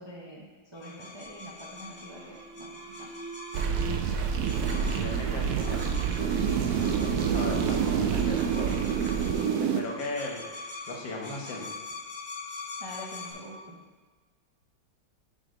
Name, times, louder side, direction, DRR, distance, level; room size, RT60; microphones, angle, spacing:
voice 1, 0.0-3.1 12.8-13.8, equal, 25° right, -4 dB, 0.5 m, -45 dB
sound 1, 0.7-13.3, left 3 dB, 25° left, 1.5 m, -44 dB
Alarm, 1.0-9.6, right 3 dB, 90° right, 1.5 m, -44 dB
sound 2, 3.5-9.8, right 7 dB, 70° right, 0.9 m, -27 dB
voice 2, 5.0-5.8 6.7-8.8 9.7-10.5 10.9-11.7, left 2 dB, 80° left, 0 dB, 1.8 m, -37 dB
7.0 x 4.0 x 5.1 m, 1.4 s
omnidirectional pair, 2.0 m